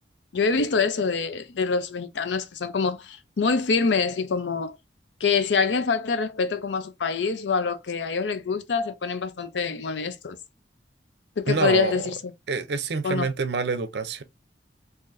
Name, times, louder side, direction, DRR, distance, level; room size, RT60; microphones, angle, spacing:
voice 1, 0.3-4.8 5.2-10.4 11.4-12.3 13.0-13.3, left 5 dB, 90° left, 0.5 m, -25 dB
voice 2, 11.5-12.0 12.5-14.2, right 4 dB, 65° right, 0.6 m, -26 dB
3.8 x 2.6 x 2.5 m
head